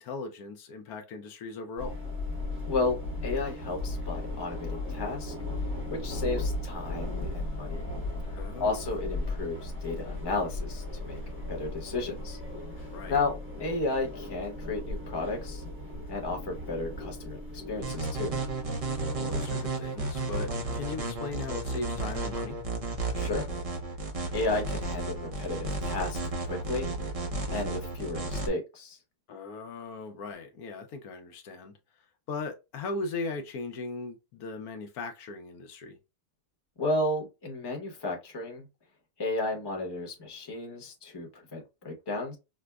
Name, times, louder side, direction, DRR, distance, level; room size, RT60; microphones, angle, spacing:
voice 1, 0.0-2.0 8.4-8.8 12.9-13.2 19.2-22.6 29.3-31.7 32.3-36.0, left 3 dB, 75° left, 1.1 m, -38 dB
sound 1, 1.8-19.5, left 2 dB, 10° right, 0.8 m, -36 dB
voice 2, 2.7-5.3 5.9-7.9 8.3-11.2 11.5-12.4 13.1-15.6 16.1-17.4 17.7-18.4 23.1-23.5 24.3-26.9 27.5-29.0 36.8-38.7 39.2-42.4, left 2 dB, 20° left, 0.8 m, -33 dB
sound 2, 17.8-28.5, right 2 dB, 50° right, 0.4 m, -33 dB
5.0 x 2.1 x 2.3 m
omnidirectional pair, 1.6 m